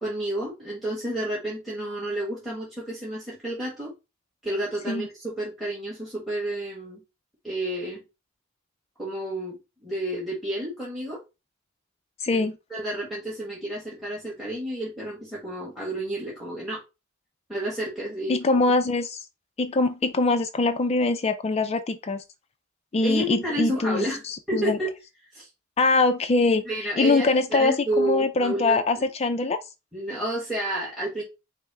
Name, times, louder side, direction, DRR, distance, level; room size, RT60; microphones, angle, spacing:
voice 1, 0.0-3.9 4.4-7.0 7.4-8.0 9.0-9.6 9.8-11.2 12.3-12.4 12.7-16.8 17.5-18.4 23.0-24.9 25.3-25.5 26.6-28.8 29.9-31.2, right 1 dB, ahead, 1.5 m, -30 dB
voice 2, 12.2-12.6 18.3-19.3 19.6-22.2 22.9-24.8 25.8-29.6, left 3 dB, 30° left, 0.4 m, -23 dB
5.4 x 2.1 x 4.7 m
head